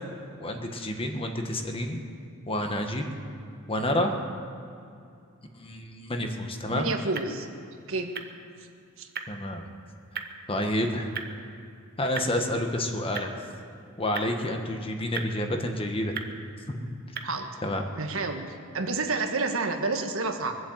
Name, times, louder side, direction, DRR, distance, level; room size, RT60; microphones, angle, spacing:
voice 1, 0.4-2.0 2.5-3.0 3.7-4.1 5.5-6.9 9.3-9.7 10.5-11.1 12.0-13.3 14.0-16.2 16.7-16.8 17.6-17.8, left 1 dB, 25° left, 4 dB, 1.4 m, -29 dB
sound 1, 6.3-17.6, right 6 dB, 45° right, 1.1 m, -43 dB
voice 2, 6.7-7.5 7.9-8.1 9.0-9.1 17.2-17.5 18.0-20.5, right 3 dB, 70° right, 5 dB, 1.5 m, -29 dB
23.0 x 8.0 x 8.0 m, 2.5 s
head